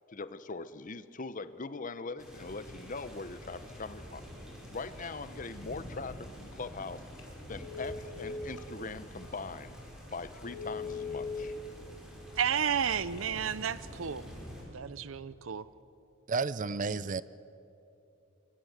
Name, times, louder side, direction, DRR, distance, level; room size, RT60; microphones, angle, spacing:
voice 1, 0.1-4.2 4.7-7.1 7.5-9.8 10.1-11.5, left 3 dB, 40° left, 14 dB, 0.9 m, -41 dB
sound 1, 2.2-14.6, equal, 5° right, 6.7 m, -47 dB
Telephone, 7.0-7.3 7.6-8.7 9.2-9.3 9.8-9.9 10.3-11.4 12.6-13.3, left 5 dB, 85° left, 3.1 m, -40 dB
voice 2, 12.4-14.2 14.7-15.7, right 8 dB, 80° right, 17 dB, 0.6 m, -32 dB
voice 3, 16.3-17.2, right 4 dB, 40° right, 17 dB, 0.5 m, -31 dB
27.5 x 23.0 x 8.1 m, 2.8 s
head